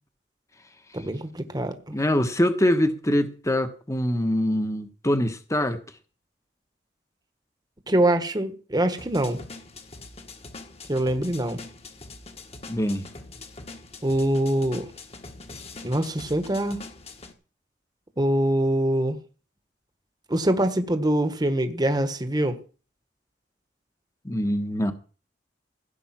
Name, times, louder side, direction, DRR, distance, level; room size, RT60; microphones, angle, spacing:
voice 1, 0.9-2.0 7.9-9.4 10.9-11.6 14.0-14.9 15.8-16.8 18.2-19.2 20.3-22.6, right 1 dB, 20° right, 1.3 m, -24 dB
voice 2, 1.9-5.8 12.7-13.0 24.2-24.9, left 1 dB, 15° left, 1.2 m, -24 dB
sound 1, 9.0-17.3, left 3 dB, 35° left, 1.6 m, -43 dB
16.0 x 8.7 x 6.0 m
head